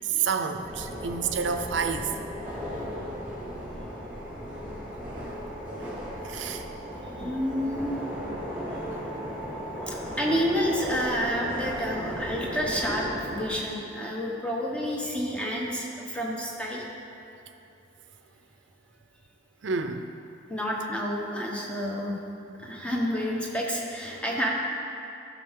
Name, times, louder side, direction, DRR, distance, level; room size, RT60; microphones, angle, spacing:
voice 1, 0.0-2.1 6.2-6.6 19.6-20.1, right 6 dB, 65° right, 7 dB, 0.6 m, -29 dB
sound 1, 0.6-13.5, equal, 10° right, 2.1 m, -36 dB
voice 2, 7.2-8.0 9.9-16.8 20.5-22.2 22.6-24.5, equal, 5° left, -3 dB, 1.1 m, -29 dB
12.5 x 6.2 x 3.7 m, 2.8 s
head